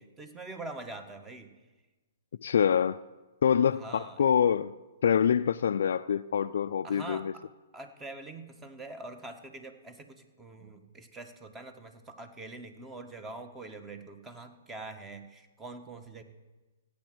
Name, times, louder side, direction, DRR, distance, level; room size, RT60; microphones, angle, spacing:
voice 1, 0.2-1.5 3.7-4.2 6.8-7.4 7.7-16.2, right 2 dB, 15° right, 7 dB, 1.5 m, -44 dB
voice 2, 2.4-3.0 3.4-4.7 5.0-7.3, left 8 dB, 65° left, 9 dB, 0.4 m, -25 dB
15.5 x 8.7 x 7.7 m, 1.2 s
hypercardioid pair, 130°, 0 cm